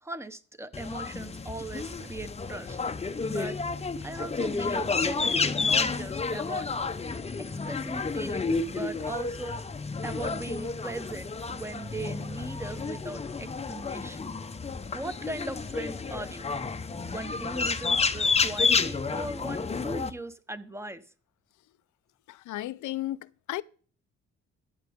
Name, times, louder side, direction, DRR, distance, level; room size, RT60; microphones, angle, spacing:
voice 1, 0.0-2.8 3.3-3.6 4.0-6.7 7.4-9.6 10.0-14.3 14.9-16.5 17.1-21.0, right 2 dB, 10° right, 1.0 m, -39 dB
sound 1, 0.7-20.1, left 4 dB, 20° left, 0.7 m, -30 dB
voice 2, 22.3-23.6, left 15 dB, 75° left, 0.6 m, -34 dB
14.5 x 9.7 x 3.6 m
cardioid pair, 90°, 30 cm